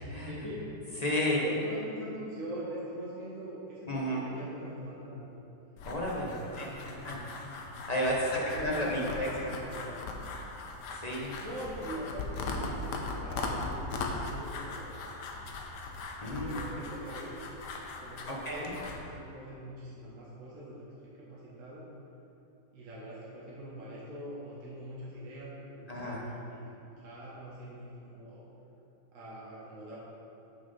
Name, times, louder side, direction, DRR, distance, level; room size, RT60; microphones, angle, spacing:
voice 1, 0.2-0.6 1.4-5.4 6.2-7.3 8.2-10.0 11.4-15.0 16.4-17.4 18.0-21.9 22.7-28.5 29.1-30.0, right 1 dB, 45° right, -7 dB, 1.6 m, -43 dB
voice 2, 1.0-1.4 3.9-4.2 5.8-6.3 6.6-6.7 7.0-9.3 10.9-11.3 16.2-16.6 18.3-18.7 25.9-26.2, left 1 dB, 30° left, -4 dB, 0.8 m, -32 dB
sound 1, 5.8-19.0, left 3 dB, 70° left, 1.3 m, -39 dB
6.3 x 6.3 x 5.5 m, 2.9 s
omnidirectional pair, 2.0 m